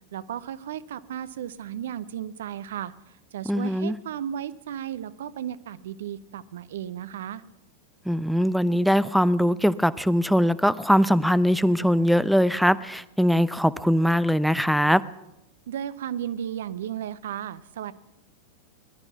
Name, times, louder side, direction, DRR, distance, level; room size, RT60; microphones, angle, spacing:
voice 1, 0.1-2.9 3.3-7.4 15.7-17.9, right 10 dB, 60° right, 16 dB, 0.6 m, -34 dB
voice 2, 3.5-4.0 8.1-15.0, equal, ahead, 17 dB, 0.4 m, -21 dB
20.0 x 11.5 x 5.8 m, 0.89 s
figure-of-eight pair, 90°, 0 cm